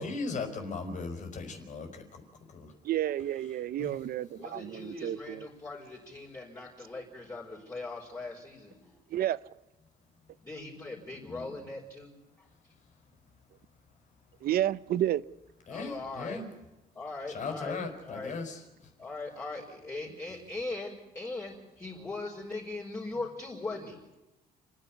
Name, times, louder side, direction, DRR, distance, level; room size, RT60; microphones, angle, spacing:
voice 1, 0.0-2.2 2.5-2.7 3.8-3.9 11.3-11.5 15.7-16.4 17.3-18.6, left 4 dB, 50° left, 5 dB, 4.8 m, -37 dB
voice 2, 2.8-5.5 9.1-9.4 14.4-15.2, right 12 dB, 70° right, 18 dB, 0.8 m, -30 dB
voice 3, 4.4-8.9 10.4-12.5 15.7-16.5 16.9-18.4 19.0-24.0, left 2 dB, 20° left, -5 dB, 5.3 m, -40 dB
30.0 x 10.5 x 9.9 m, 0.99 s
cardioid pair, 125°, 16 cm